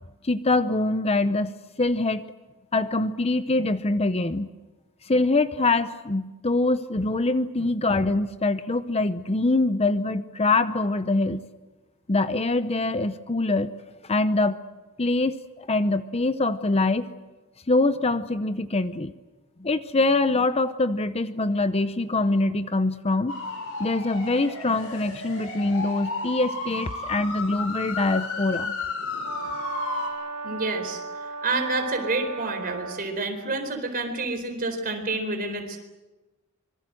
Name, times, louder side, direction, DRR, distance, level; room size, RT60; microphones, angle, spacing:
voice 1, 0.2-1.5 1.8-2.2 2.7-4.5 5.0-11.4 12.1-13.7 14.1-14.6 15.0-17.1 17.7-19.1 19.6-23.3 23.8-28.7, left 2 dB, 30° left, 12 dB, 0.8 m, -24 dB
sound 1, 23.3-30.1, left 3 dB, 70° left, 7.3 m, -33 dB
Brass instrument, 29.2-33.1, right 4 dB, 80° right, 4.7 m, -36 dB
voice 2, 30.4-31.0 31.4-35.8, right 3 dB, 40° right, 5 dB, 4.2 m, -28 dB
25.5 x 24.0 x 7.8 m, 1.1 s
head